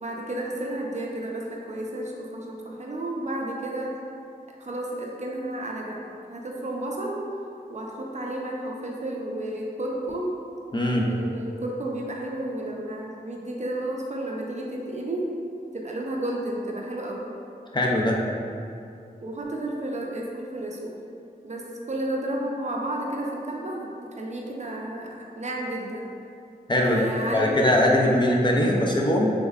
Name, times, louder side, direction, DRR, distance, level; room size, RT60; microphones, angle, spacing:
voice 1, 0.0-3.9 4.6-7.3 7.7-10.4 11.1-15.3 15.7-17.3 19.2-21.0 21.4-26.1 26.8-27.9, right 1 dB, 45° right, -1 dB, 0.4 m, -32 dB
voice 2, 10.7-11.1 17.7-18.2 26.7-27.1 27.3-29.3, left 1 dB, 30° left, -2 dB, 0.5 m, -21 dB
3.4 x 3.2 x 2.3 m, 2.5 s
wide cardioid pair, 65°, 16 cm